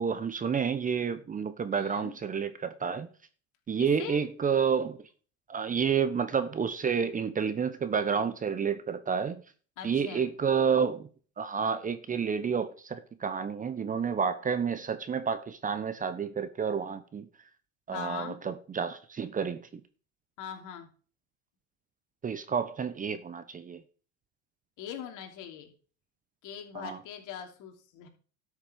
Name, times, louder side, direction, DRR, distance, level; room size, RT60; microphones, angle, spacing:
voice 1, 0.0-3.1 3.7-5.0 5.5-9.4 9.8-11.1 11.4-17.3 17.9-19.6 22.2-23.8 26.7-27.0, right 6 dB, 20° right, 1.0 m, -30 dB
voice 2, 1.7-2.1 3.8-4.2 9.8-10.3 17.9-18.4 20.4-20.9 24.8-25.7 26.4-28.1, left 8 dB, 55° left, 3.0 m, -41 dB
12.5 x 6.8 x 5.1 m
supercardioid pair, 105°, 38 cm